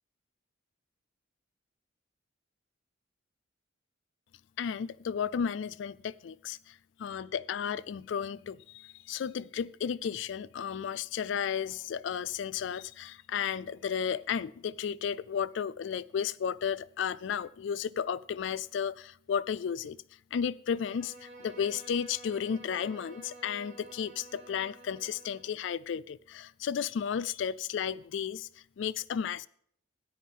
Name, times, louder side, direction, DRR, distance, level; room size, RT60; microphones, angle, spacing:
voice 1, 4.6-20.0 20.3-29.5, left 7 dB, 65° left, 0.3 m, -33 dB
Bowed string instrument, 20.6-25.6, right 2 dB, 65° right, 2.3 m, -51 dB
13.5 x 10.0 x 3.6 m
head